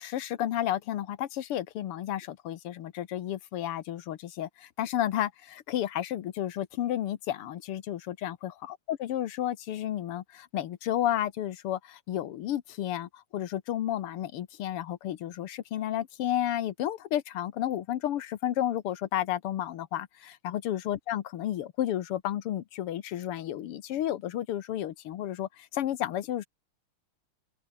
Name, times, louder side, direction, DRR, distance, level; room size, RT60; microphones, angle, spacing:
voice 1, 0.0-26.5, left 12 dB, 85° left, 2.0 m, -32 dB
open air
omnidirectional pair, 2.4 m